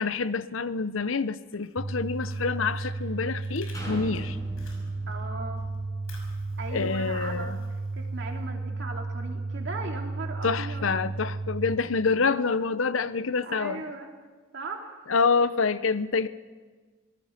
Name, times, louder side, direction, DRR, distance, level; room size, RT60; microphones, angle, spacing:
voice 1, 0.0-4.4 6.7-7.6 10.4-13.8 15.1-16.3, left 4 dB, 70° left, 0.7 m, -27 dB
Fire, 1.3-5.3 5.6-8.4, left 4 dB, 85° left, 5.8 m, -54 dB
sound 1, 1.8-11.8, right 3 dB, 30° right, 1.1 m, -33 dB
sound 2, 3.7-7.5 8.0-8.1, left 1 dB, 15° left, 5.5 m, -43 dB
voice 2, 5.1-5.6 6.6-7.6 7.9-11.0 13.4-14.1 14.5-15.1, right 3 dB, 55° right, 2.8 m, -38 dB
26.0 x 18.5 x 5.9 m
head